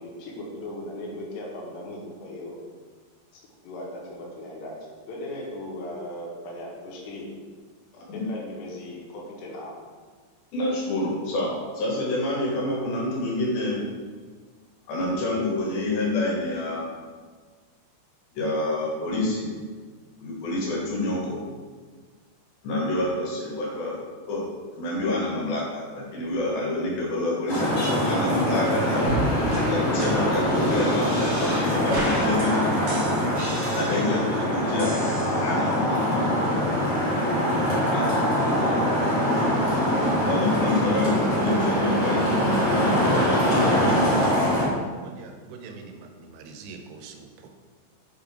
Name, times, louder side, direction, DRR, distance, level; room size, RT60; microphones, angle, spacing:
voice 1, 0.0-2.6 3.3-7.3 8.1-9.7, left 1 dB, 85° left, -2 dB, 3.3 m, -38 dB
voice 2, 7.9-8.3 10.5-13.8 14.9-16.9 18.3-19.5 20.2-21.4 22.6-24.4 24.7-29.1 29.7-32.6 33.8-34.9 35.4-36.3 37.9-38.3 40.2-44.3, left 2 dB, 65° left, -4 dB, 3.0 m, -27 dB
Traffic noise roadway noise, 27.5-44.7, equal, 45° left, 2.6 m, -23 dB
sound 1, 29.0-29.2 29.5-29.6 30.0-30.1 30.5-31.6 31.9-32.5 32.9-34.3 34.8-35.7, right 2 dB, 45° right, 1.6 m, -34 dB
voice 3, 45.0-47.5, right 4 dB, 85° right, 4 dB, 2.6 m, -44 dB
6.6 x 5.3 x 3.6 m, 1.5 s
omnidirectional pair, 4.8 m